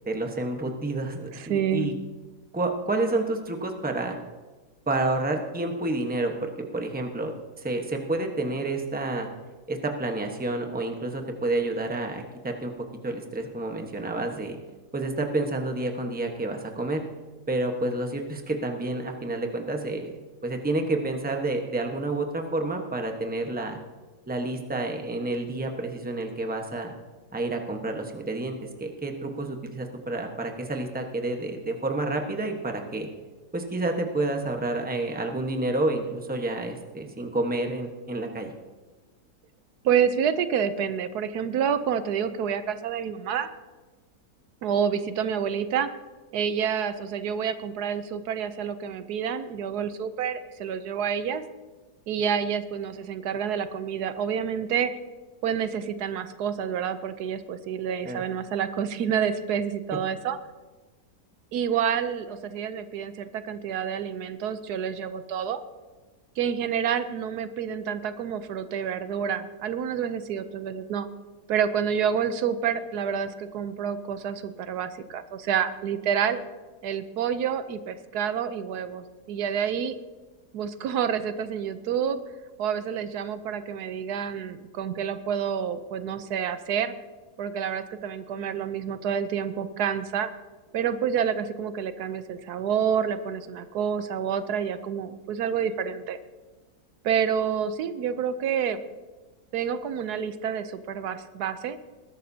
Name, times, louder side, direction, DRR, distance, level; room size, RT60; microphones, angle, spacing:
voice 1, 0.1-1.9 2.5-4.2 4.9-9.3 9.7-12.7 13.0-14.6 14.9-17.0 17.5-20.1 20.4-23.8 24.3-26.9 27.3-33.1 33.5-38.5 58.0-58.2, right 2 dB, 5° right, 3 dB, 1.0 m, -29 dB
voice 2, 1.3-1.9 39.8-43.5 44.6-45.9 46.3-51.4 52.1-54.9 55.4-60.4 61.5-65.6 66.4-71.1 71.5-76.4 76.8-80.0 80.5-82.2 82.6-86.9 87.4-90.3 90.7-96.2 97.0-98.8 99.5-101.8, right 8 dB, 80° right, 11 dB, 1.2 m, -28 dB
20.5 x 11.5 x 2.8 m, 1.3 s
omnidirectional pair, 1.7 m